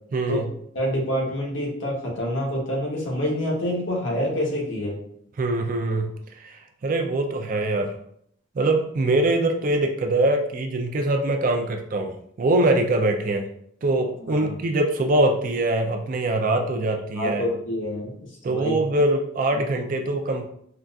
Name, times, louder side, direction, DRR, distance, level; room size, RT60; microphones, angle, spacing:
voice 1, 0.1-0.5 5.4-6.1 6.4-8.0 8.6-13.5 13.8-17.5 18.4-20.5, right 2 dB, 40° right, 4 dB, 0.3 m, -23 dB
voice 2, 0.7-5.0 14.2-14.5 17.1-18.1 18.5-18.7, equal, 70° left, -2 dB, 1.0 m, -27 dB
3.8 x 2.4 x 2.2 m, 0.68 s
head